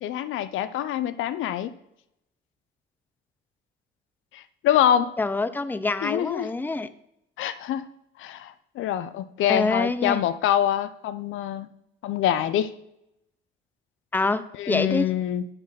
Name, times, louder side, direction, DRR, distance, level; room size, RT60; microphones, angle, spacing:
voice 1, 0.0-1.7 4.3-5.1 6.0-6.5 7.4-7.8 8.2-11.7 12.0-12.7 14.6-15.5, left 10 dB, 80° left, 13 dB, 0.6 m, -25 dB
voice 2, 5.2-6.9 9.5-10.2 14.1-15.1, left 3 dB, 10° left, 13 dB, 0.5 m, -26 dB
10.0 x 4.0 x 5.6 m, 0.80 s
cardioid pair, 90°, 20 cm